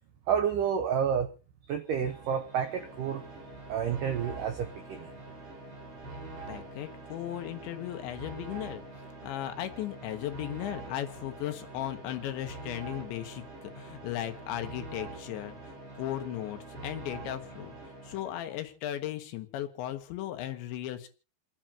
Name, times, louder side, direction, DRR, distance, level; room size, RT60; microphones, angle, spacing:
voice 1, 0.3-1.3 1.7-3.2 3.7-5.1, right 7 dB, 85° right, 5 dB, 1.8 m, -29 dB
sound 1, 1.8-18.7, right 2 dB, 30° right, 5.4 m, -45 dB
voice 2, 6.5-8.8 9.2-17.7 18.0-21.1, left 12 dB, 85° left, 7 dB, 3.5 m, -36 dB
29.0 x 9.7 x 2.9 m, 0.33 s
omnidirectional pair, 5.1 m